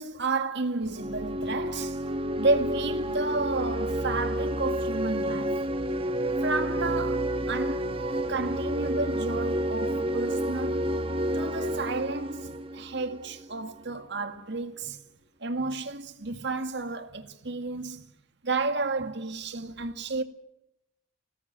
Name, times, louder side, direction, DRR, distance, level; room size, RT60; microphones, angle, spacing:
voice 1, 0.0-2.0 2.4-5.5 6.4-8.0 8.3-10.9 11.3-15.0 15.4-18.0 18.4-20.2, right 3 dB, 55° right, 1.9 m, -31 dB
sound 1, 0.8-13.5, right 1 dB, 25° right, 1.3 m, -30 dB
20.5 x 17.0 x 8.9 m
head